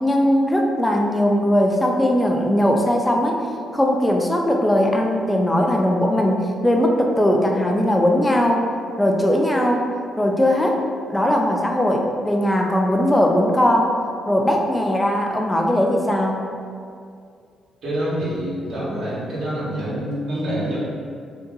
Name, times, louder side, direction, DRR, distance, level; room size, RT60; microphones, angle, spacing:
voice 1, 0.0-3.4 3.7-8.7 9.0-9.8 10.2-10.8 11.1-14.0 14.3-16.5, left 1 dB, 10° left, 1 dB, 0.4 m, -19 dB
voice 2, 17.8-20.8, right 1 dB, 70° right, -8 dB, 1.2 m, -26 dB
2.7 x 2.5 x 3.7 m, 2.3 s
cardioid pair, 90°, 0 cm